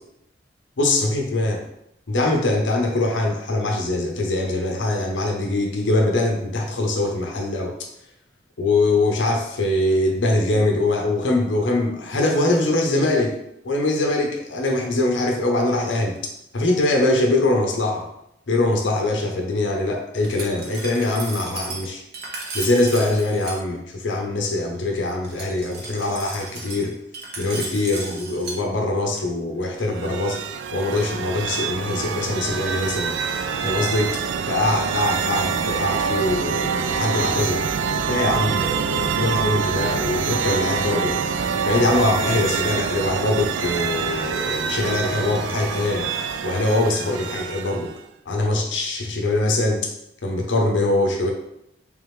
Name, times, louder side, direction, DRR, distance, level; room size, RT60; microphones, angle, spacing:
voice 1, 0.8-1.6 2.1-7.7 8.6-13.4 13.6-16.2 16.5-18.1 18.5-22.0 22.5-26.9 27.4-30.4 30.7-33.2 33.6-34.2 34.5-37.7 38.1-41.2 41.6-46.1 46.4-47.9 48.3-49.9 50.2-51.3, left 2 dB, 90° left, 2 dB, 0.7 m, -22 dB
Glass, 20.2-23.6 25.2-28.6, right 3 dB, 60° right, 0.7 m, -35 dB
sound 1, 29.8-48.0, right 6 dB, 85° right, 0.3 m, -26 dB
3.5 x 3.3 x 3.1 m, 0.78 s
head